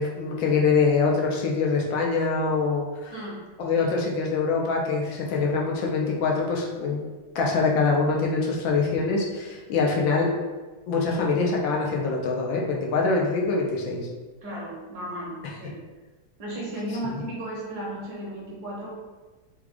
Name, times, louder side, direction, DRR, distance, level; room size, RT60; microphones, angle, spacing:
voice 1, 0.0-3.1 3.6-7.0 7.3-10.3 10.9-14.0, left 4 dB, 70° left, -1 dB, 1.4 m, -24 dB
voice 2, 3.1-3.4 3.7-3.9 14.4-15.8 16.4-19.0, right 1 dB, 55° right, -4 dB, 1.3 m, -35 dB
4.9 x 2.4 x 3.5 m, 1.2 s
omnidirectional pair, 2.4 m